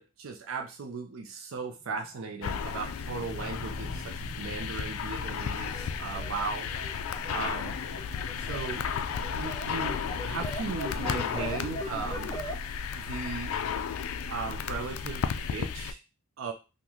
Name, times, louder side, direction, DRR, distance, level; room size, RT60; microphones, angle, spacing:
voice 1, 0.0-6.7 7.3-7.7 8.4-8.8 9.3-12.4 12.9-13.5 14.3-16.0 16.4-16.5, right 4 dB, 70° right, 3 dB, 0.5 m, -37 dB
sound 1, 1.5-13.0, left 1 dB, 45° right, 1.1 m, -49 dB
sound 2, 2.4-15.9, left 6 dB, 80° left, 0.3 m, -34 dB
sound 3, 5.6-12.6, equal, 20° left, 0.5 m, -41 dB
3.7 x 2.1 x 3.0 m, 0.29 s
head